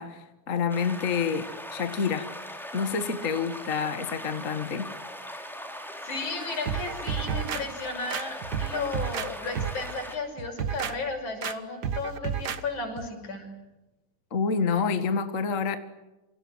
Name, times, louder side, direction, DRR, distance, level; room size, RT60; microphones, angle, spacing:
voice 1, 0.0-2.3 2.7-4.9 14.3-15.8, left 5 dB, 35° left, 1.5 m, -28 dB
sound 1, 0.7-10.2, equal, ahead, 3.8 m, -40 dB
voice 2, 6.0-13.5, left 3 dB, 65° left, 7.4 m, -34 dB
sound 2, 6.7-7.6 8.1-9.3 9.5-9.9 10.4-10.9 11.4-11.5 11.8-12.6 13.0-13.1, right 7 dB, 55° right, 1.2 m, -31 dB
28.5 x 26.0 x 8.0 m
omnidirectional pair, 3.6 m